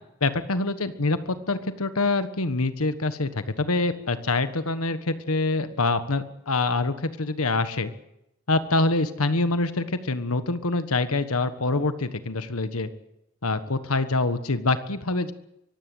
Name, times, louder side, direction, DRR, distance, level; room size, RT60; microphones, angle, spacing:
voice 1, 0.2-7.9 8.5-12.9 13.4-15.3, left 3 dB, 85° left, 11 dB, 1.4 m, -25 dB
24.0 x 15.5 x 8.0 m, 0.85 s
head